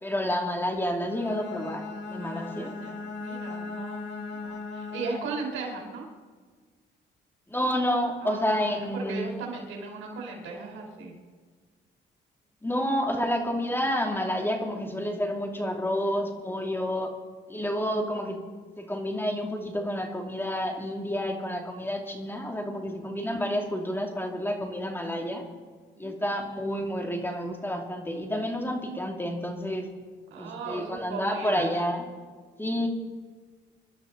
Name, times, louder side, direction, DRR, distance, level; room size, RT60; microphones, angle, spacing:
voice 1, 0.0-2.7 7.5-9.3 12.6-17.1 17.5-18.4 18.8-25.4 26.0-29.9 30.4-32.1 32.6-32.9, equal, 10° left, 2 dB, 2.6 m, -29 dB
Bowed string instrument, 1.0-5.5, left 4 dB, 65° left, 2.1 m, -38 dB
voice 2, 2.2-6.1 8.2-11.2 25.9-26.3 28.3-28.5 30.3-31.7, right 4 dB, 85° right, 0 dB, 4.1 m, -38 dB
26.0 x 12.5 x 4.0 m, 1.5 s
cardioid pair, 90°, 20 cm